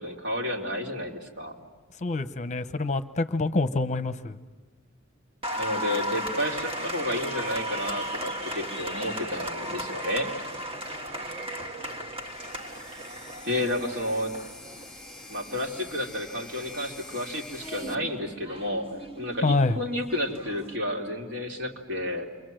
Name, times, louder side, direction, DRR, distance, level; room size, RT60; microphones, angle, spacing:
voice 1, 0.0-1.6 5.6-10.3 13.4-14.3 15.3-18.9 19.2-22.2, left 1 dB, 60° right, 1 dB, 3.2 m, -31 dB
voice 2, 2.0-4.4 19.4-19.8, left 3 dB, 35° left, 11 dB, 0.8 m, -26 dB
Applause, 5.4-20.8, equal, 30° right, 1.5 m, -36 dB
sound 1, 12.2-17.9, left 3 dB, 5° left, 1.7 m, -46 dB
28.5 x 23.5 x 7.8 m, 1.4 s
head